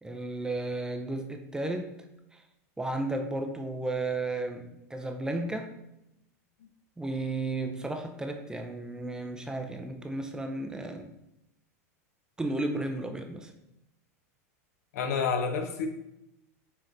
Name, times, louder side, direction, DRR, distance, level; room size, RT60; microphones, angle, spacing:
voice 1, 0.0-1.9 2.3-2.4 2.8-5.7 7.0-11.1 12.4-13.5, right 2 dB, 10° right, 5 dB, 0.4 m, -33 dB
voice 2, 14.9-15.9, left 5 dB, 80° left, 6 dB, 0.7 m, -29 dB
5.9 x 3.1 x 2.5 m, 0.86 s
hypercardioid pair, 115°, 8 cm